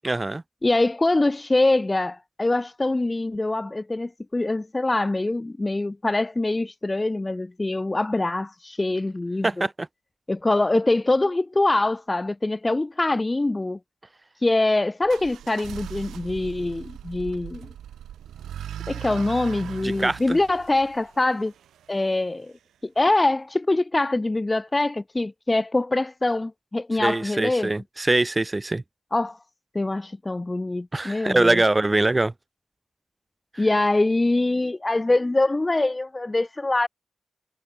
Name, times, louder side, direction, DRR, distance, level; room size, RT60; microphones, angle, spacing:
voice 1, 0.0-0.4 9.4-9.9 19.8-20.4 27.0-28.8 30.9-32.3 33.5-33.6, right 2 dB, 30° right, 6.4 m, -23 dB
voice 2, 0.6-9.7 10.3-13.8 14.4-17.7 18.9-21.5 21.9-22.5 22.8-27.7 29.1-29.4 29.7-31.6 33.6-36.9, left 2 dB, 30° left, 1.6 m, -24 dB
sound 1, 15.0-21.9, right 10 dB, 90° right, 3.7 m, -39 dB
supercardioid pair, 40°, 0 cm